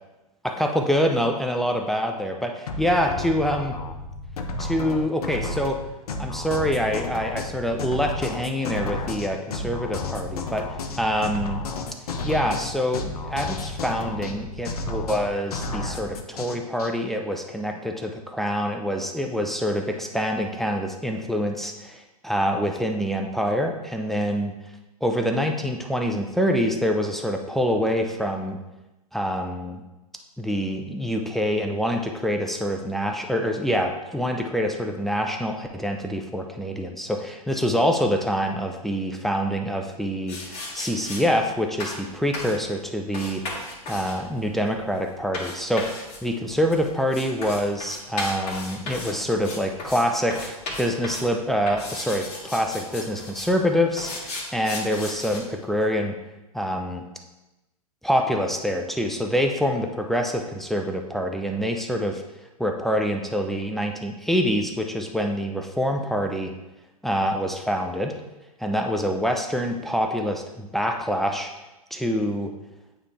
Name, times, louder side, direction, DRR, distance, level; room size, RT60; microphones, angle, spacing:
voice 1, 0.6-3.7 4.6-5.8 6.2-11.6 12.2-24.5 25.0-28.6 29.1-29.8 30.4-43.4 43.9-56.1 56.5-57.0 58.0-62.2 62.6-66.5 67.0-68.1 68.6-71.5 71.9-72.5, equal, ahead, 3 dB, 0.5 m, -26 dB
sound 1, 2.7-16.9, left 3 dB, 80° left, 0.7 m, -32 dB
sound 2, 40.3-41.2 41.8-42.0 42.3-42.6 43.1-50.0 50.3-51.3 51.7-53.5 54.0-55.4, left 2 dB, 35° left, 2.0 m, -35 dB
8.8 x 3.4 x 3.3 m, 1.0 s
hypercardioid pair, 110°, 19 cm